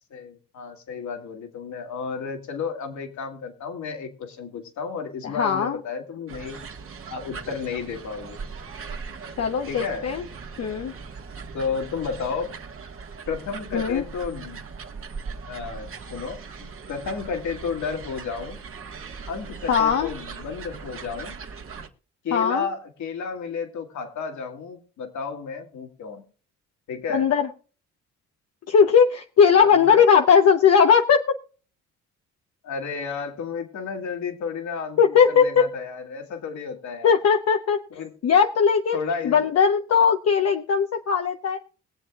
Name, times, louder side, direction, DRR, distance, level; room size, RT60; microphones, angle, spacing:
voice 1, 0.1-6.6 7.1-8.4 9.7-10.1 11.5-12.5 13.3-14.6 15.5-18.6 19.3-21.4 22.2-26.2 26.9-27.3 29.7-30.0 32.6-37.1 37.9-38.1 38.9-39.5, left 5 dB, 70° left, 4 dB, 2.5 m, -32 dB
voice 2, 5.2-5.8 9.4-10.3 10.6-10.9 13.7-14.0 19.7-20.1 22.3-22.7 27.1-27.5 28.7-31.2 35.0-35.6 37.0-37.8 38.2-39.0 39.2-41.6, left 6 dB, 55° left, 5 dB, 0.9 m, -19 dB
sound 1, 6.3-21.9, right 5 dB, 45° right, 1.7 m, -39 dB
22.0 x 7.7 x 2.4 m, 0.38 s
cardioid pair, 90°, 30 cm